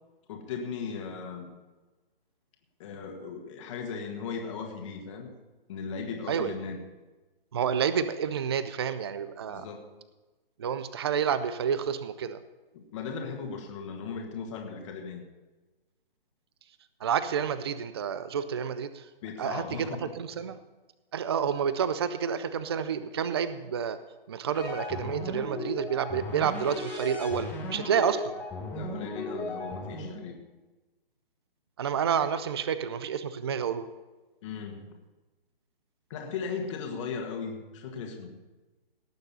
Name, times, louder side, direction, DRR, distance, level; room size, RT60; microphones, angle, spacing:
voice 1, 0.3-1.5 2.8-5.3 5.7-6.8 9.5-9.8 12.7-15.2 19.2-20.1 28.7-30.4 34.4-34.9 36.1-38.3, left 5 dB, 30° left, 2 dB, 1.7 m, -37 dB
voice 2, 7.5-9.7 10.6-12.4 17.0-19.1 19.4-19.9 20.2-20.6 21.1-24.0 24.3-28.4 31.8-33.9, right 7 dB, 25° right, 13 dB, 0.4 m, -29 dB
sound 1, 24.5-30.3, left 2 dB, 5° left, 1.2 m, -36 dB
18.0 x 6.7 x 5.5 m, 1.2 s
hypercardioid pair, 150°, 29 cm